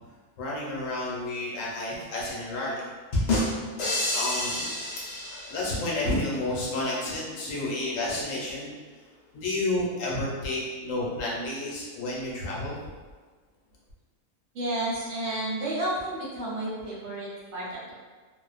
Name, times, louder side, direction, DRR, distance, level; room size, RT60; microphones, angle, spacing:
voice 1, 0.4-2.8 4.1-4.7 5.3-8.8 9.3-12.8, left 2 dB, 75° left, -5 dB, 1.0 m, -31 dB
sound 1, 3.1-5.9, left 1 dB, 55° left, 0.4 m, -28 dB
voice 2, 14.5-17.9, right 1 dB, 65° right, -6 dB, 0.8 m, -31 dB
2.4 x 2.2 x 2.3 m, 1.4 s
omnidirectional pair, 1.4 m